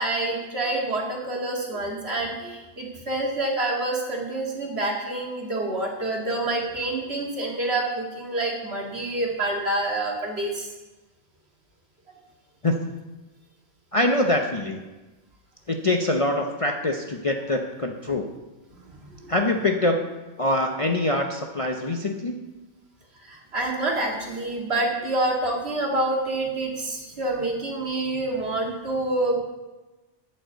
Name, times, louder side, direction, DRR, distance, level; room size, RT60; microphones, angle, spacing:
voice 1, 0.0-10.7 18.9-19.3 23.2-29.4, right 2 dB, 60° right, -1 dB, 2.3 m, -27 dB
voice 2, 12.6-12.9 13.9-14.8 15.7-18.3 19.3-20.0 20.4-22.4, left 1 dB, 35° left, 3 dB, 0.7 m, -24 dB
11.5 x 5.4 x 8.0 m, 1.1 s
omnidirectional pair, 1.2 m